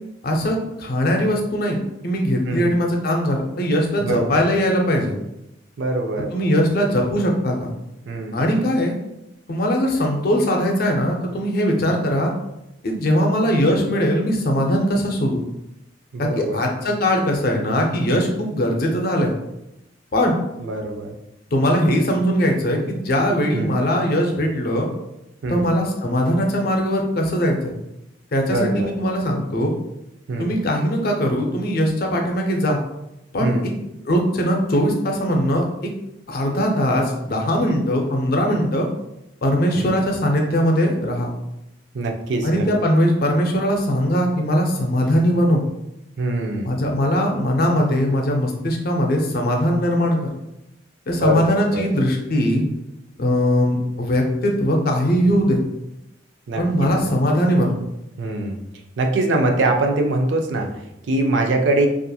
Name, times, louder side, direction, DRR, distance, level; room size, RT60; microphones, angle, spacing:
voice 1, 0.2-1.8 2.0-5.2 6.3-7.7 8.3-8.9 9.5-12.3 12.8-15.4 16.2-19.3 20.1-20.4 21.5-24.9 25.5-27.7 28.3-29.7 30.4-32.8 33.3-33.5 34.1-35.9 36.3-38.9 39.4-41.3 42.4-45.6 46.6-50.3 51.1-52.6 53.2-55.6 56.6-57.8, equal, 55° left, 2 dB, 0.5 m, -20 dB
voice 2, 4.0-4.4 5.8-6.3 8.1-8.4 11.8-11.9 16.1-16.6 20.6-21.2 23.5-23.8 25.4-25.7 28.5-28.9 30.3-30.5 33.4-33.7 37.7-37.8 39.7-39.9 41.9-42.7 46.2-46.7 51.2-52.0 56.5-57.1 58.2-58.6 59.0-61.9, right 2 dB, 75° right, 4 dB, 0.4 m, -23 dB
2.7 x 2.4 x 2.3 m, 0.88 s
head